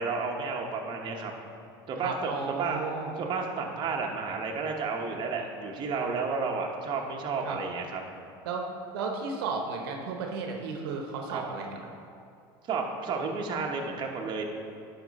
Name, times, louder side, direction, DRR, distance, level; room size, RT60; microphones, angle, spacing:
voice 1, 0.0-1.3 1.9-2.8 3.2-8.0 11.3-11.4 12.7-14.4, right 4 dB, 40° right, 1 dB, 1.0 m, -32 dB
voice 2, 2.0-3.2 7.4-7.6 8.4-8.7 8.9-11.9, right 4 dB, 80° right, 2 dB, 0.9 m, -34 dB
11.0 x 4.4 x 4.1 m, 2.5 s
supercardioid pair, 105°, 12 cm